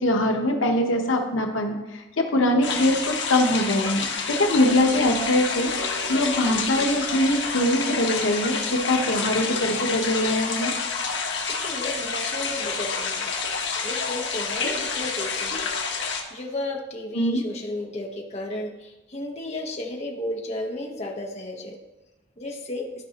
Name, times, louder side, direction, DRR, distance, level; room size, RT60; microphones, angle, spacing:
voice 1, 0.0-4.0 4.4-10.7 17.1-17.4, left 1 dB, 90° left, 3 dB, 1.0 m, -23 dB
sound 1, 2.6-16.2, left 5 dB, 65° left, 1.1 m, -28 dB
voice 2, 11.6-13.3 13.8-15.7 16.3-21.8 22.4-22.9, left 1 dB, 35° left, 0 dB, 1.0 m, -33 dB
13.0 x 4.9 x 2.9 m, 1.0 s
head